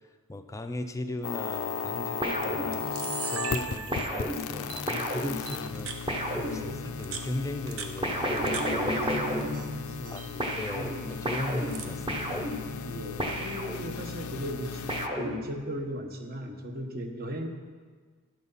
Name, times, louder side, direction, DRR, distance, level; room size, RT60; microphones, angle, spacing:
voice 1, 0.3-2.8 3.3-6.6 7.0-9.0 10.1-12.5, left 2 dB, 15° left, 7 dB, 0.4 m, -37 dB
sound 1, 1.2-15.1, left 6 dB, 85° left, 0.5 m, -37 dB
Camera, 1.6-1.8 2.4-2.5 2.7-4.3 4.7-4.8 5.5-6.0 6.8-8.7 9.0-9.7 9.9-10.3 11.1-12.0, right 6 dB, 70° right, 0.8 m, -39 dB
sound 2, 2.2-3.2 3.9-7.1 8.0-10.1 10.4-14.2 14.9-15.9, equal, 25° right, 1.0 m, -33 dB
voice 2, 6.4-6.8 8.8-9.0 9.7-10.4 10.7-11.0 12.8-17.5, equal, 45° right, 4 dB, 1.0 m, -38 dB
12.0 x 6.2 x 5.5 m, 1.5 s
head